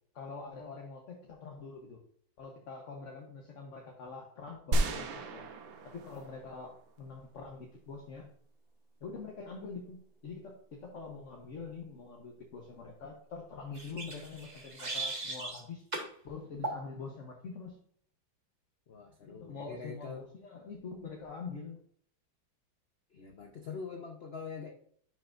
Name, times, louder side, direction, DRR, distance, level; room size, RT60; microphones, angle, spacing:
voice 1, 0.1-2.0 2.4-5.4 5.8-8.3 9.0-15.8 16.2-17.8 19.2-21.8, left 4 dB, 50° left, 1 dB, 1.1 m, -45 dB
sound 1, 4.7-7.0, right 2 dB, 80° right, 1.6 m, -33 dB
sound 2, 13.7-15.6 15.9-16.1 16.6-16.8, right 2 dB, 25° right, 1.1 m, -38 dB
voice 2, 18.9-20.3 23.1-24.7, left 5 dB, 85° left, 3 dB, 0.5 m, -44 dB
10.5 x 5.8 x 2.5 m, 0.62 s
omnidirectional pair, 2.1 m